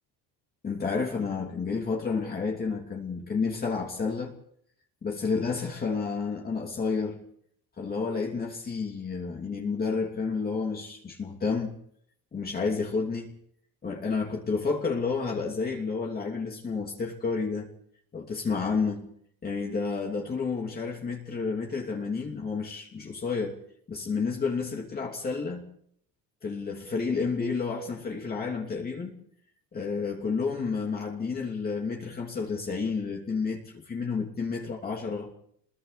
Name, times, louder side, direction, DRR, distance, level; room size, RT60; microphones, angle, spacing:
voice 1, 0.6-4.3 5.0-7.2 7.8-11.7 12.3-13.3 13.8-17.7 18.1-19.1 19.4-23.6 23.9-25.7 26.4-29.1 29.7-35.3, left 4 dB, 25° left, 0 dB, 3.0 m, -30 dB
30.0 x 21.5 x 4.3 m, 0.66 s
cardioid pair, 145°, 35 cm